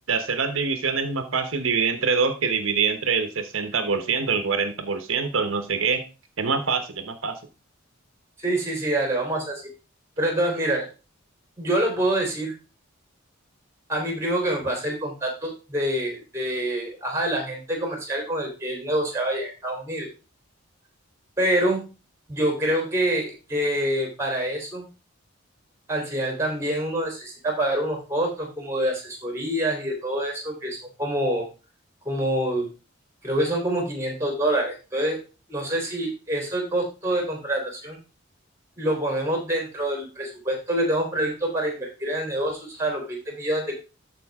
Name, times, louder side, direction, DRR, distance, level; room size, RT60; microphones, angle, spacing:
voice 1, 0.1-6.0 6.4-7.4, right 5 dB, 70° right, 8 dB, 1.0 m, -25 dB
voice 2, 8.4-9.6 10.2-10.9 11.6-12.5 13.9-20.1 21.4-21.8 22.3-24.8 25.9-31.5 32.1-32.7 33.2-35.2 35.5-38.0 38.8-43.7, right 1 dB, 10° right, 2 dB, 3.5 m, -26 dB
13.5 x 5.2 x 3.5 m, 0.32 s
head